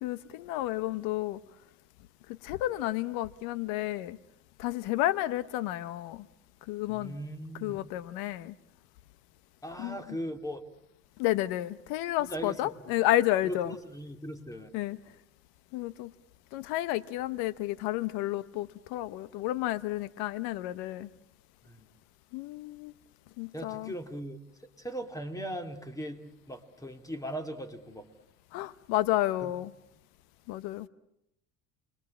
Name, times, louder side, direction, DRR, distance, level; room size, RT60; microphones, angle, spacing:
voice 1, 0.0-1.4 2.3-4.2 4.6-6.3 6.7-7.2 7.6-8.5 9.8-10.0 11.2-13.8 14.7-15.0 15.7-16.1 16.5-21.1 22.3-22.9 23.4-23.9 28.5-29.7 30.5-30.9, left 15 dB, 90° left, 0.9 m, -31 dB
voice 2, 6.9-7.8 9.6-10.6 12.2-12.9 13.4-14.7 21.7-21.9 23.5-24.4 24.8-28.1 29.4-29.5, equal, 10° left, 2.5 m, -39 dB
29.0 x 22.0 x 8.7 m
cardioid pair, 120°, 35 cm